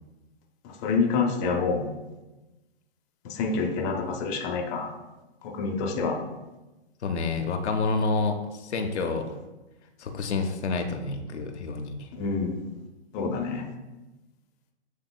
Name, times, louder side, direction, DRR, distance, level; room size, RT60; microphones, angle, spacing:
voice 1, 0.6-1.9 3.2-4.9 5.4-6.2 12.1-12.6 13.1-13.6, left 4 dB, 25° left, 1 dB, 0.5 m, -27 dB
voice 2, 7.0-9.3 10.0-12.1, left 3 dB, 80° left, 4 dB, 0.8 m, -28 dB
8.0 x 2.9 x 2.2 m, 1.1 s
hypercardioid pair, 135°, 33 cm